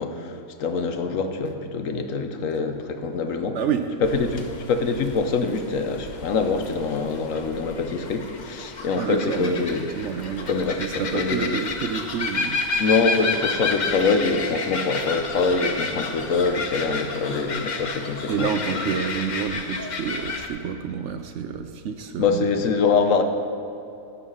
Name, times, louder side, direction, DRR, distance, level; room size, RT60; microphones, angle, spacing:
voice 1, 0.0-3.6 4.0-4.4 4.7-9.9 10.5-11.6 12.8-18.8 22.2-23.2, left 4 dB, 65° left, 7 dB, 1.1 m, -24 dB
voice 2, 3.5-3.9 9.0-9.7 9.9-10.5 10.8-12.6 18.3-22.6, right 7 dB, 65° right, 7 dB, 0.9 m, -28 dB
sound 1, 4.0-20.5, left 4 dB, 40° left, 0.7 m, -31 dB
16.5 x 5.8 x 5.5 m, 2.9 s
omnidirectional pair, 1.5 m